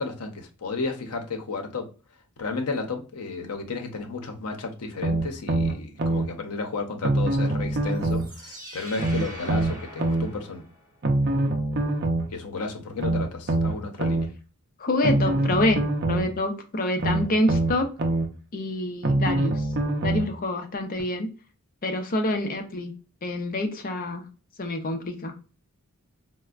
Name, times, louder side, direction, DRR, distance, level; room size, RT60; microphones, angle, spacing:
voice 1, 0.0-1.9 2.4-10.6 12.3-14.3, left 3 dB, 85° left, 0.7 m, -33 dB
sound 1, 5.0-6.3 7.0-8.3 9.0-10.3 11.0-12.3 13.0-14.3 15.0-16.3 17.0-18.3 19.0-20.3 21.0-21.1, right 2 dB, 50° right, 0.6 m, -24 dB
sound 2, 7.9-11.1, equal, 20° right, 1.5 m, -43 dB
voice 2, 14.8-15.8 16.1-17.9 18.5-19.7 20.0-21.3 21.8-22.9 23.2-24.3 24.6-25.3, left 1 dB, 40° left, 0.6 m, -26 dB
4.2 x 2.1 x 2.3 m
head